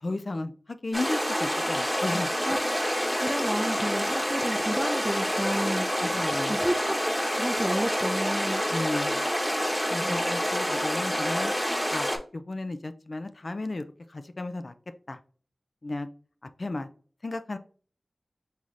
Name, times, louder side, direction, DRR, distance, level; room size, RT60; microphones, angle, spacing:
voice 1, 0.0-2.3 6.0-6.6 8.7-9.2 9.9-11.5 11.9-13.8 14.1-14.7 15.1-15.2 15.8-16.1 16.6-16.9 17.2-17.6, left 2 dB, 55° left, 10 dB, 0.3 m, -33 dB
sound 1, 0.9-12.2, equal, 5° left, 1.1 m, -27 dB
voice 2, 3.2-5.9 6.5-6.9 7.3-8.6 10.0-10.2, right 1 dB, 15° right, 8 dB, 0.5 m, -31 dB
5.5 x 3.1 x 2.5 m, 0.43 s
wide cardioid pair, 55°, 0 cm